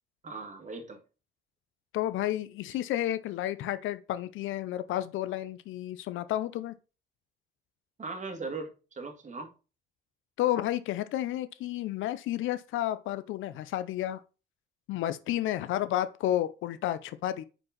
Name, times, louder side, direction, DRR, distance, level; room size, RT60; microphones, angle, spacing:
voice 1, 0.2-1.0 8.0-9.5, right 3 dB, 40° right, 1.8 m, -39 dB
voice 2, 1.9-6.7 10.4-14.2 14.9-17.4, left 13 dB, 80° left, 0.5 m, -31 dB
5.2 x 4.6 x 5.7 m
cardioid pair, 90°, 20 cm